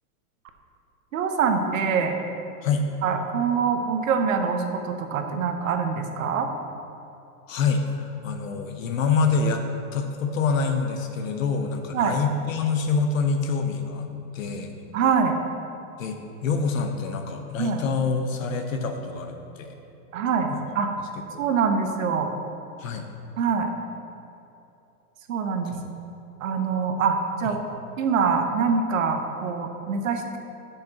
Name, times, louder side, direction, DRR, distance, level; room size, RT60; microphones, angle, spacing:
voice 1, 1.1-2.1 3.0-6.5 11.9-12.2 14.9-15.4 17.6-17.8 20.1-20.9 21.4-22.3 23.4-23.7 25.3-25.7 26.4-27.6 28.0-30.4, right 6 dB, 55° right, 5 dB, 1.0 m, -24 dB
voice 2, 7.5-9.6 9.9-14.8 16.0-19.8 20.5-20.7 21.3-21.4 22.8-23.1 25.6-25.9 27.4-27.5, left 4 dB, 55° left, 5 dB, 1.0 m, -26 dB
14.0 x 6.7 x 2.9 m, 2.9 s
supercardioid pair, 175°, 47 cm